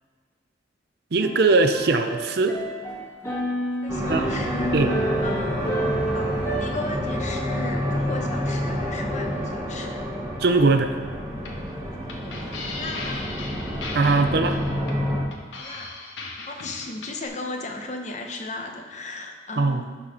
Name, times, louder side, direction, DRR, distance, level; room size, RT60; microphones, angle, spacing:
voice 1, 1.1-2.6 4.1-4.3 4.7-5.0 10.4-10.9 13.9-14.6 19.6-19.8, right 3 dB, 55° right, 8 dB, 0.5 m, -20 dB
sound 1, 1.2-6.7, right 1 dB, 15° left, 1.5 m, -29 dB
voice 2, 3.7-5.8 6.1-10.1 12.2-13.3 15.6-16.1 16.5-20.0, left 2 dB, 40° left, 3 dB, 0.8 m, -36 dB
sound 2, 3.9-15.2, equal, 15° right, 1.3 m, -28 dB
sound 3, 11.4-17.3, left 3 dB, 75° left, 1.1 m, -37 dB
11.0 x 4.3 x 4.2 m, 1.5 s
head